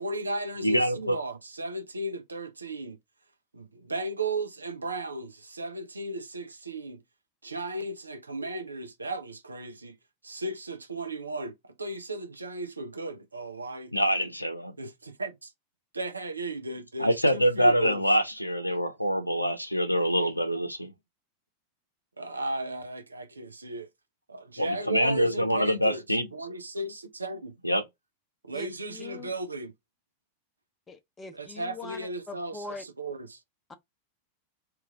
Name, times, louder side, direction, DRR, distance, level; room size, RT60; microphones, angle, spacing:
voice 1, 0.0-3.0 3.5-7.0 7.4-10.0 10.2-13.9 14.8-15.5 15.9-18.0 22.2-23.9 24.3-27.5 28.4-29.7 31.3-33.4, right 2 dB, 80° right, 0.5 m, -35 dB
voice 2, 0.6-1.2 13.9-14.7 17.0-20.9 24.6-26.3 27.6-27.8, equal, 90° left, 0.5 m, -25 dB
voice 3, 28.5-29.3 30.9-32.8 33.7-33.8, left 3 dB, 15° left, 0.7 m, -42 dB
3.0 x 2.4 x 3.5 m
figure-of-eight pair, 90°, 0 cm